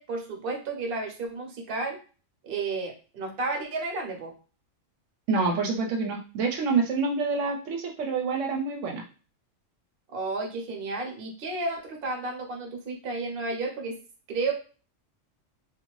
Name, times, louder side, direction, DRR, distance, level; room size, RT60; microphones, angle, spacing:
voice 1, 0.0-2.0 2.4-4.3 10.1-13.9 14.3-14.5, right 3 dB, 50° right, 2 dB, 0.9 m, -32 dB
voice 2, 5.3-9.0, right 4 dB, 80° right, 2 dB, 0.9 m, -27 dB
2.6 x 2.4 x 3.0 m, 0.35 s
omnidirectional pair, 1.3 m